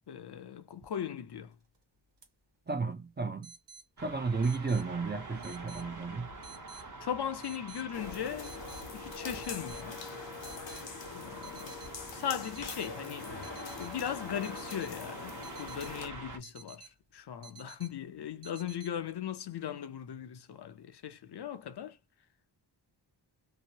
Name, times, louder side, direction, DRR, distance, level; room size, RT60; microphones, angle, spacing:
voice 1, 0.1-1.5 6.7-8.6 8.9-10.0 11.1-11.7 12.1-13.3 13.8-22.0, left 9 dB, 65° left, 0.6 m, -38 dB
sound 1, 1.5-1.8 2.2-2.3 3.4-3.9 4.4-4.9 5.4-5.9 6.4-6.9 7.4-7.9 8.4-8.9 9.4-9.9 10.4-10.9 11.4-11.9 12.4-12.9 13.4-13.9 14.4-14.9 15.4-15.9 16.4-16.9 17.4-17.9 18.4-18.9, right 6 dB, 75° right, 1.2 m, -52 dB
voice 2, 2.7-3.5 4.0-6.3, right 4 dB, 25° right, 0.4 m, -33 dB
sound 2, 4.0-16.4, right 2 dB, 45° right, 0.9 m, -46 dB
sound 3, 7.9-16.1, left 4 dB, 90° left, 0.9 m, -43 dB
2.8 x 2.0 x 2.8 m
wide cardioid pair, 65°, 43 cm